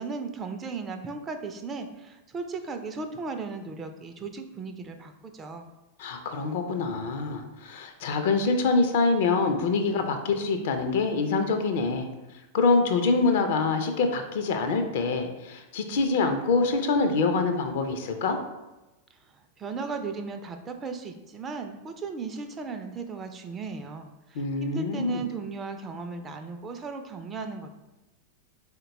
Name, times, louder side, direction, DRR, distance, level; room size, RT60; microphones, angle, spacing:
voice 1, 0.0-5.7 19.2-27.7, right 4 dB, 25° right, 6 dB, 0.3 m, -36 dB
voice 2, 6.0-12.1 12.5-18.4 24.3-25.2, left 4 dB, 55° left, 6 dB, 0.4 m, -25 dB
3.9 x 2.2 x 3.8 m, 1.0 s
figure-of-eight pair, 90°, 0 cm